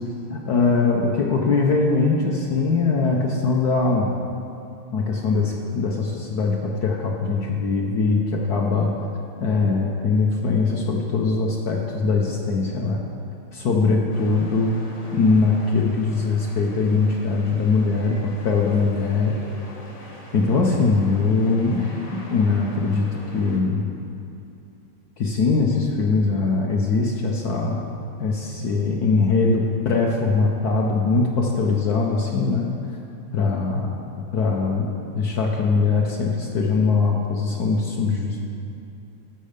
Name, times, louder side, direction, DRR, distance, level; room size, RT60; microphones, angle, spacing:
voice 1, 0.3-4.1 4.9-8.9 9.4-13.0 13.5-14.8 15.1-19.4 20.3-21.9 22.3-23.1 23.3-23.8 25.2-27.9 28.2-32.7 33.3-33.9 34.3-38.5, left 4 dB, 60° left, -1 dB, 1.1 m, -21 dB
sound 1, 14.1-23.6, left 1 dB, 40° left, 1.3 m, -42 dB
12.0 x 6.6 x 5.1 m, 2.8 s
omnidirectional pair, 2.4 m